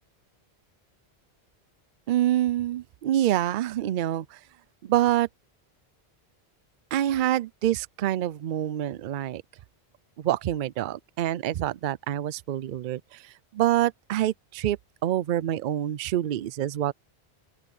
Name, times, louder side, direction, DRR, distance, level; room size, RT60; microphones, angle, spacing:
voice 1, 2.1-4.4 4.8-5.3 6.9-9.4 10.2-16.9, right 12 dB, 60° right, 0.6 m, -26 dB
open air
omnidirectional pair, 1.1 m